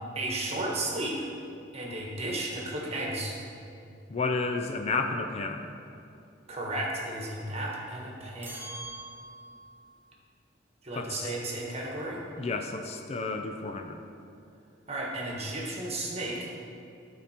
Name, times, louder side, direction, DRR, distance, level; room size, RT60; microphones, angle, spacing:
voice 1, 0.1-1.3 1.7-3.4 6.5-8.6 10.8-12.2 14.9-16.5, right 1 dB, 35° right, -2 dB, 1.3 m, -33 dB
voice 2, 4.1-5.7 11.0-11.3 12.4-14.0, left 3 dB, 35° left, 5 dB, 0.4 m, -31 dB
sound 1, 8.4-9.8, right 2 dB, 10° right, 0.8 m, -43 dB
12.0 x 4.3 x 4.4 m, 2.6 s
head